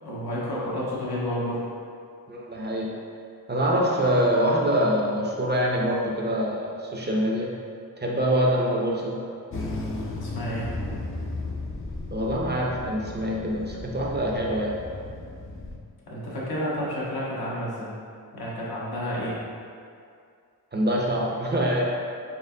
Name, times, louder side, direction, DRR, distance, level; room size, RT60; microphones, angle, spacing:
voice 1, 0.0-1.6 10.2-10.7 16.1-17.9 18.3-19.4, equal, 85° left, -6 dB, 1.1 m, -30 dB
voice 2, 2.3-2.9 3.5-7.5 8.0-9.2 12.1-14.7 20.7-21.8, equal, 30° right, -2 dB, 0.4 m, -25 dB
sound 1, 9.5-15.8, left 2 dB, 35° left, 0.4 m, -35 dB
4.3 x 3.4 x 2.6 m, 2.3 s
wide cardioid pair, 145°, 37 cm